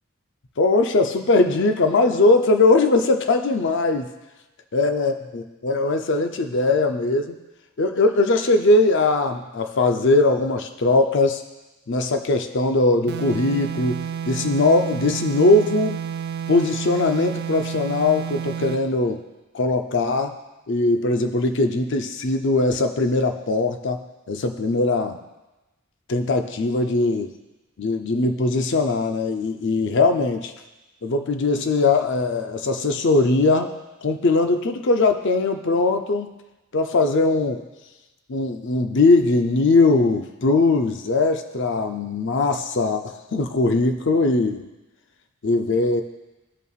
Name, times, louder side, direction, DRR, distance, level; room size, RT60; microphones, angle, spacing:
voice 1, 0.6-4.1 4.7-7.4 7.8-11.4 11.9-16.0 16.5-19.2 19.5-20.4 20.7-25.2 26.1-27.3 27.8-30.5 31.0-36.3 36.7-37.6 38.3-44.7 45.4-46.0, left 3 dB, 60° left, 6 dB, 0.6 m, -20 dB
sound 1, 13.1-18.9, right 7 dB, 50° right, 0.3 m, -30 dB
14.5 x 5.5 x 2.4 m, 1.1 s
head